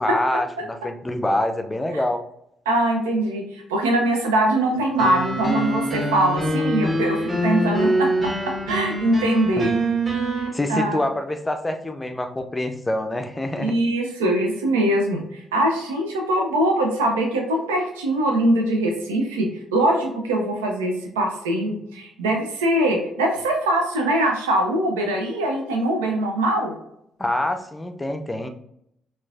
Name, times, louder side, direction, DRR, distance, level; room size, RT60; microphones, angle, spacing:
voice 1, 0.0-2.2 9.6-9.7 10.5-13.7 27.2-28.5, left 1 dB, 15° left, 6 dB, 0.5 m, -25 dB
voice 2, 2.7-8.1 8.4-9.7 10.4-11.0 13.6-26.7, right 1 dB, 80° right, 2 dB, 0.5 m, -22 dB
sound 1, 5.0-10.5, right 1 dB, 30° right, 1.4 m, -24 dB
3.8 x 2.5 x 2.5 m, 0.75 s
figure-of-eight pair, 45°, 0 cm